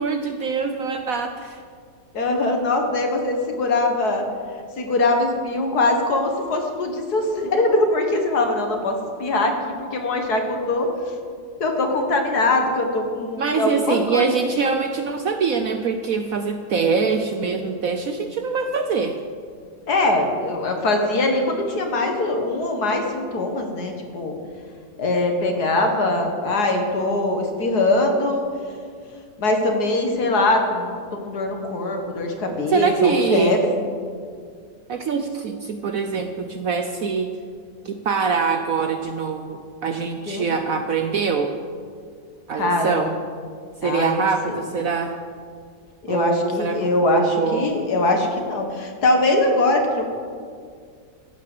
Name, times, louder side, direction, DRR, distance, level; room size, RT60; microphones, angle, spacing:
voice 1, 0.0-1.6 13.4-19.2 32.6-33.6 34.9-37.3 37.8-41.5 42.5-43.2 43.8-45.2 46.1-47.7, right 5 dB, 60° right, 6 dB, 1.0 m, -24 dB
voice 2, 2.1-4.2 4.8-10.9 11.6-14.3 19.9-24.4 25.0-28.5 29.4-33.7 40.3-40.5 42.5-43.2 43.8-44.3 46.0-50.2, left 2 dB, 60° left, 3 dB, 2.1 m, -22 dB
14.0 x 8.9 x 7.7 m, 2.1 s
omnidirectional pair, 1.9 m